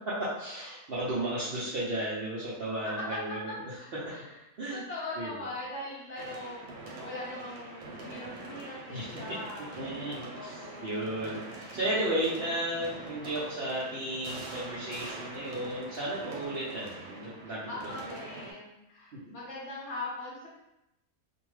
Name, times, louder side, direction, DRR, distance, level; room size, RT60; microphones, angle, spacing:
voice 1, 0.2-3.5 4.6-4.8 5.2-5.3 8.9-9.1 9.8-17.7, right 1 dB, 65° right, -8 dB, 0.6 m, -34 dB
voice 2, 3.8-4.4 4.7-6.6 7.0-9.7 10.3-11.2 16.7-16.8 17.7-20.5, left 2 dB, 60° left, -5 dB, 0.8 m, -41 dB
sound 1, 6.2-18.5, right 2 dB, 90° right, 1.2 m, -44 dB
2.6 x 2.2 x 3.1 m, 0.92 s
omnidirectional pair, 1.6 m